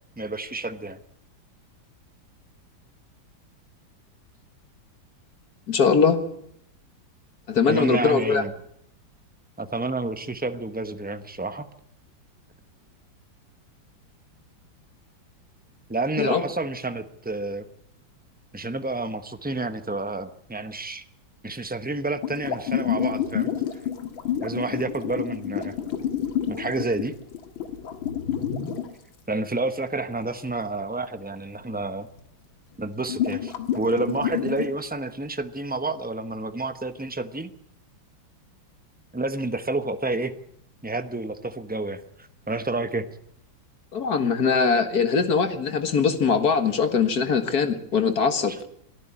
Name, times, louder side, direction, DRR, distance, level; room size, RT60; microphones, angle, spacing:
voice 1, 0.2-1.0 7.7-8.5 9.6-11.7 15.9-17.7 18.5-21.0 21.4-23.5 24.4-25.7 26.5-27.1 29.3-32.1 32.8-37.5 39.1-40.3 40.8-42.0 42.5-43.1 48.5-48.6, right 2 dB, 10° right, 9 dB, 0.5 m, -29 dB
voice 2, 5.7-6.2 7.5-8.4 16.2-16.4 43.9-48.5, left 5 dB, 50° left, 9 dB, 2.1 m, -21 dB
sound 1, 22.2-28.9 32.2-32.3 33.1-34.7, left 9 dB, 90° left, 2.5 m, -28 dB
23.0 x 13.5 x 8.5 m, 0.71 s
omnidirectional pair, 2.1 m